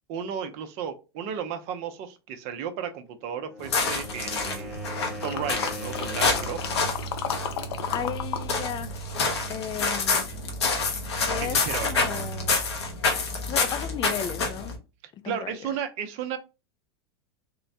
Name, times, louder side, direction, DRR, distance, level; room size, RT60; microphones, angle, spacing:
voice 1, 0.1-4.7 5.2-6.6 11.4-12.1 15.2-16.4, right 8 dB, 50° right, 0.6 m, -34 dB
Wind instrument woodwind instrument, 3.3-6.9, left 2 dB, ahead, 0.9 m, -41 dB
sound 1, 3.6-14.8, left 3 dB, 90° left, 0.9 m, -28 dB
sound 2, 5.2-8.5 8.7-10.2 10.7-10.8, left 8 dB, 75° left, 0.6 m, -34 dB
voice 2, 7.9-9.0 9.5-10.6 11.3-12.6 13.5-14.7 15.2-15.7, left 9 dB, 35° left, 0.5 m, -35 dB
3.7 x 2.1 x 2.6 m
hypercardioid pair, 100°, 14 cm